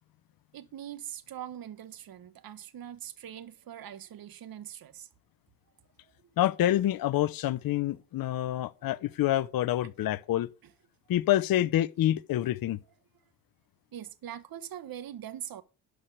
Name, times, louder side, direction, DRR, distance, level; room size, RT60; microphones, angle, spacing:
voice 1, 0.5-5.1 8.5-9.2 9.8-9.9 10.6-10.7 11.6-11.7 13.9-15.6, right 10 dB, 55° right, 1.3 m, -43 dB
voice 2, 6.4-10.5 11.1-12.8, left 13 dB, 55° left, 0.7 m, -27 dB
12.0 x 4.7 x 6.6 m
supercardioid pair, 80°, 42 cm